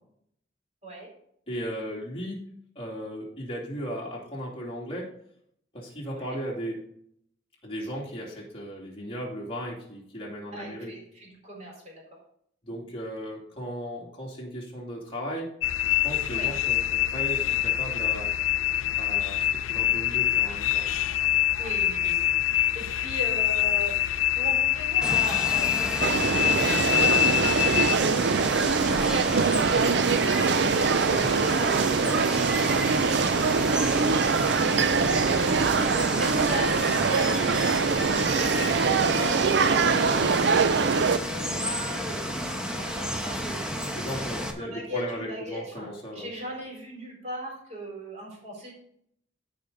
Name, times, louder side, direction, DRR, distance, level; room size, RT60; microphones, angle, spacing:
voice 1, 1.5-2.4 2.7-5.1 5.7-6.8 7.6-10.9 12.6-15.5 15.9-18.3 19.0-20.9 41.3-41.5 43.9-46.3, equal, 30° left, -3 dB, 2.9 m, -36 dB
voice 2, 10.5-12.2 16.3-16.5 21.6-29.1 29.7-43.7 44.3-48.7, equal, 35° right, -2 dB, 4.2 m, -38 dB
sound 1, 15.6-28.0, left 13 dB, 85° left, 0.5 m, -25 dB
Water, 25.0-44.5, equal, 5° right, 1.1 m, -32 dB
sound 2, 26.0-41.2, right 5 dB, 60° right, 0.5 m, -23 dB
14.5 x 5.4 x 4.0 m, 0.68 s
head